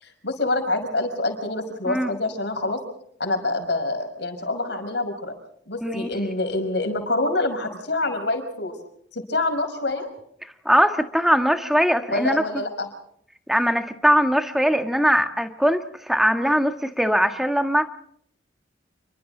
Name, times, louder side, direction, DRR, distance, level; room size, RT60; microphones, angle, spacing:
voice 1, 0.0-2.8 3.2-5.3 5.7-8.7 9.1-10.1 12.1-12.9, left 2 dB, 60° left, 5 dB, 5.7 m, -26 dB
voice 2, 10.4-12.4 13.5-17.9, equal, ahead, 6 dB, 1.5 m, -21 dB
29.5 x 24.0 x 4.0 m, 0.68 s
head